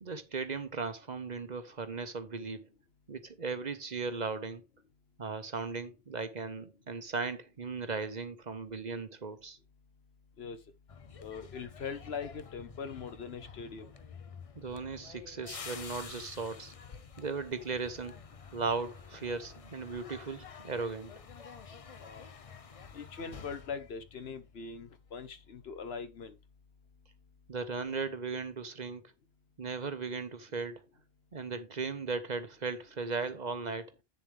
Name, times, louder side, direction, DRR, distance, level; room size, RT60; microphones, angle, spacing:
voice 1, 0.0-2.7 3.1-4.6 5.2-9.6 14.6-16.7 17.2-18.2 18.5-21.1 27.5-29.1 29.6-30.9 31.3-33.9, right 4 dB, 45° right, 1.0 m, -37 dB
sound 1, 10.9-24.9 25.2-25.5, left 6 dB, 40° left, 0.7 m, -49 dB
voice 2, 11.2-13.9 22.0-22.3 22.9-26.4, left 5 dB, 75° left, 1.3 m, -41 dB
9.0 x 6.9 x 3.4 m
omnidirectional pair, 1.1 m